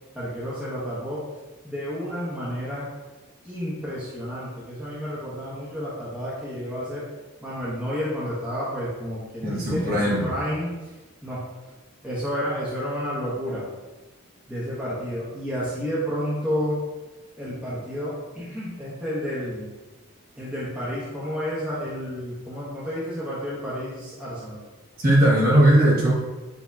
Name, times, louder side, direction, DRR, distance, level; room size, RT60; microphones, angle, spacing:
voice 1, 0.1-1.2 1.6-2.9 3.4-7.0 7.4-10.7 11.2-11.4 12.0-13.6 14.5-16.8 17.4-19.7 20.4-24.6, equal, 5° right, -9 dB, 0.9 m, -30 dB
voice 2, 9.4-10.3 25.0-26.1, right 1 dB, 40° right, -6 dB, 1.2 m, -18 dB
6.8 x 2.8 x 2.3 m, 1.2 s
head